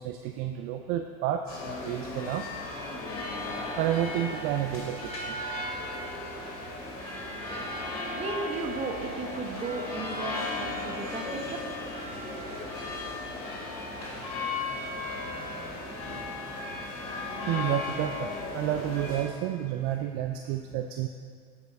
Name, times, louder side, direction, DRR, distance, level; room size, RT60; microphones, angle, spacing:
voice 1, 0.0-2.5 3.8-5.4 17.5-21.1, right 11 dB, 55° right, 6 dB, 0.4 m, -30 dB
sound 1, 1.5-19.3, left 2 dB, 85° left, 2.0 m, -36 dB
voice 2, 8.2-11.8, right 3 dB, 35° right, 3 dB, 1.2 m, -35 dB
13.5 x 4.9 x 3.5 m, 2.1 s
hypercardioid pair, 95°, 18 cm